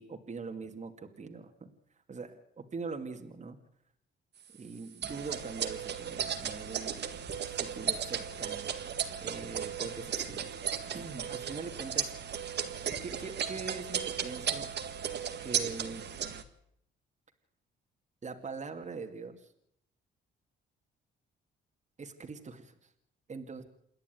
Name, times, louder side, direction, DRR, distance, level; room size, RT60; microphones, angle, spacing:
voice 1, 0.0-1.7 2.1-3.6 4.5-7.0 7.6-8.7 9.2-10.5 10.9-12.1 13.0-14.7 15.4-16.1 18.2-19.5 22.0-22.9 23.3-23.6, right 4 dB, 35° right, 4 dB, 2.5 m, -42 dB
sound 1, 5.0-16.4, right 8 dB, 60° right, 1.9 m, -35 dB
28.0 x 10.5 x 9.4 m, 0.71 s
cardioid pair, 90°, 20 cm